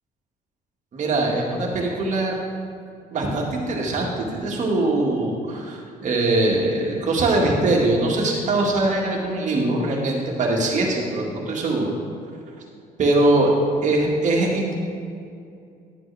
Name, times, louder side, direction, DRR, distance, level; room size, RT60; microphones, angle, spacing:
voice 1, 0.9-2.4 3.1-11.9 13.0-13.5 13.8-14.7, right 2 dB, 45° right, -1 dB, 1.8 m, -22 dB
11.5 x 7.7 x 3.4 m, 2.4 s
cardioid pair, 110°, 17 cm